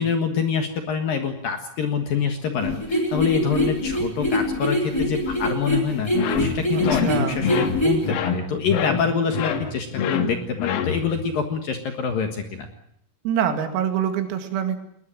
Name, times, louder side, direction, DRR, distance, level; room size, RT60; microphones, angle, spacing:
voice 1, 0.0-6.1 6.4-12.7, left 6 dB, 60° left, 6 dB, 2.6 m, -26 dB
sound 1, 2.6-8.1, left 1 dB, 5° left, 4.4 m, -24 dB
sound 2, 6.1-11.3, left 6 dB, 85° left, 4.7 m, -26 dB
voice 2, 6.7-7.4 13.2-14.8, right 8 dB, 85° right, 6 dB, 5.0 m, -25 dB
20.5 x 20.5 x 9.0 m, 0.71 s
omnidirectional pair, 5.9 m